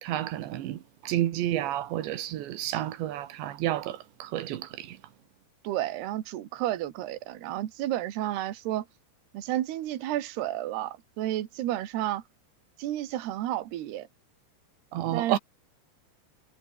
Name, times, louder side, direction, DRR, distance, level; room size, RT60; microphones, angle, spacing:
voice 1, 0.0-5.0 14.9-15.4, right 13 dB, 85° right, 3.8 m, -30 dB
voice 2, 5.6-8.9 9.3-12.2 12.8-14.1 15.1-15.4, right 13 dB, 70° right, 3.6 m, -31 dB
omnidirectional pair, 5.0 m